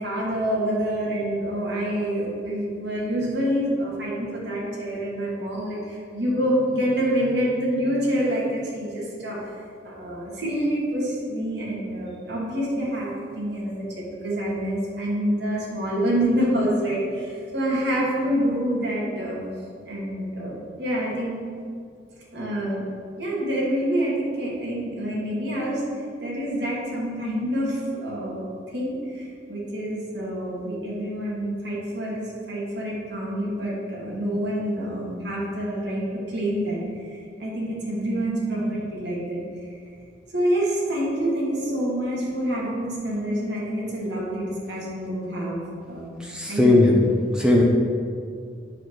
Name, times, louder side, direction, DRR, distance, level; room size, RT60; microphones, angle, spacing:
voice 1, 0.0-9.6 9.8-19.4 19.8-21.4 22.3-22.8 23.2-25.8 26.2-28.4 28.7-36.8 37.1-39.4 40.3-46.9, equal, 65° right, -6 dB, 2.3 m, -27 dB
voice 2, 46.2-46.9 47.3-47.6, left 2 dB, 5° right, -2 dB, 0.8 m, -18 dB
8.9 x 4.2 x 6.4 m, 2.3 s
head